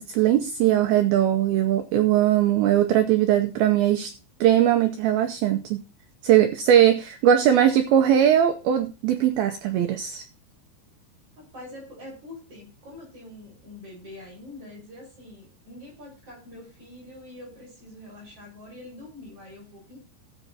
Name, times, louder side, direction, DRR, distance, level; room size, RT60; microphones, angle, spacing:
voice 1, 0.0-4.1 4.4-5.8 6.2-10.2, right 11 dB, 90° right, 7 dB, 2.1 m, -20 dB
voice 2, 11.4-20.0, left 1 dB, 30° right, -3 dB, 5.8 m, -44 dB
17.0 x 7.9 x 2.8 m, 0.33 s
omnidirectional pair, 5.3 m